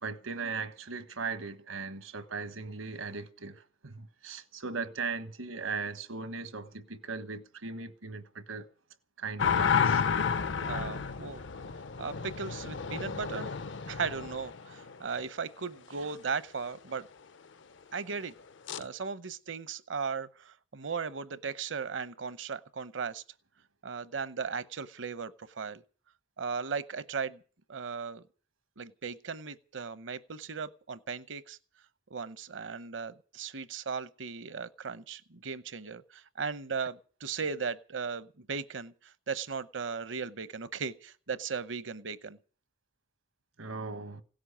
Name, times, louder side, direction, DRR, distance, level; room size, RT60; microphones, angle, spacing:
voice 1, 0.0-8.7 9.2-10.0 16.0-16.2 43.6-44.2, right 4 dB, 80° right, 1.4 m, -38 dB
sound 1, 9.4-15.2 18.7-18.8, left 6 dB, 60° left, 0.6 m, -31 dB
voice 2, 10.6-11.4 12.0-13.5 13.9-17.1 17.9-18.3 18.8-23.2 23.8-25.8 26.4-27.4 27.7-28.2 28.8-31.6 32.1-42.4, right 5 dB, 65° right, 0.8 m, -37 dB
17.0 x 7.6 x 10.0 m
head